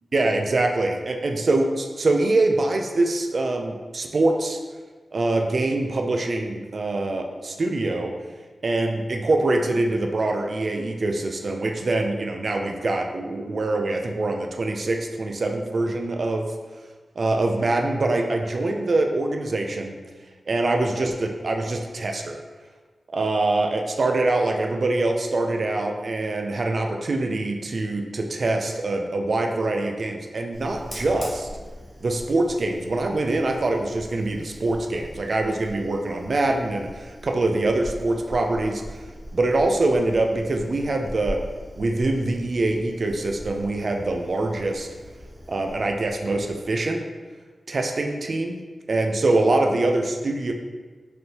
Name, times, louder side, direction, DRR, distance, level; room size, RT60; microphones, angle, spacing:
voice 1, 0.1-4.6 5.1-8.1 8.6-16.5 17.2-19.9 20.5-22.4 23.1-31.5 32.0-39.0 39.3-41.4 41.8-44.9 45.5-47.0 47.7-48.6 48.9-50.5, right 2 dB, 45° right, 3 dB, 0.3 m, -24 dB
Fire, 30.5-46.6, equal, 20° left, 0.9 m, -41 dB
4.3 x 3.3 x 2.8 m, 1.4 s
wide cardioid pair, 170°, 0 cm